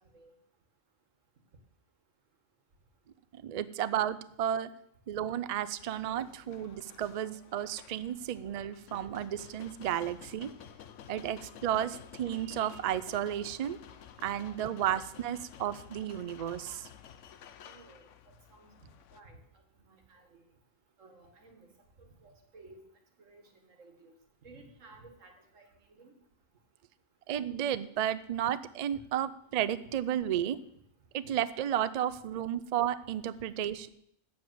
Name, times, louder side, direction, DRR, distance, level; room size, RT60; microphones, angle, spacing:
voice 1, 3.4-4.7 5.1-10.5 11.1-13.8 14.2-16.9 27.3-30.6 31.1-33.9, right 10 dB, 65° right, 15 dB, 0.4 m, -33 dB
sound 1, 5.8-19.2, left 9 dB, 75° left, 1.0 m, -52 dB
voice 2, 17.6-18.7 19.1-19.4 19.8-20.4 21.0-21.7 22.0-22.8 23.2-24.1 24.4-26.1, right 3 dB, 80° right, 4 dB, 2.0 m, -56 dB
8.6 x 7.3 x 7.7 m, 0.75 s
omnidirectional pair, 1.3 m